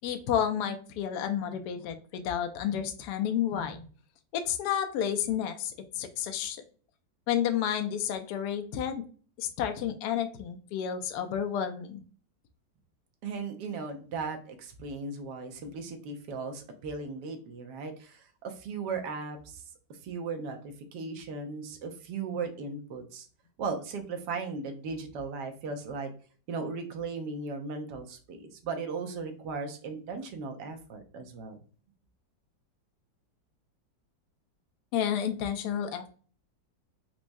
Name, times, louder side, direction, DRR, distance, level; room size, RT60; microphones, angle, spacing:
voice 1, 0.0-3.8 4.3-6.6 7.3-9.0 9.4-12.0 34.9-36.1, left 9 dB, 75° left, 7 dB, 1.0 m, -31 dB
voice 2, 13.2-19.6 20.0-20.6 20.9-23.3 23.6-26.1 26.5-31.6, right 4 dB, 70° right, 5 dB, 1.1 m, -37 dB
4.5 x 2.0 x 2.5 m, 0.41 s
omnidirectional pair, 2.0 m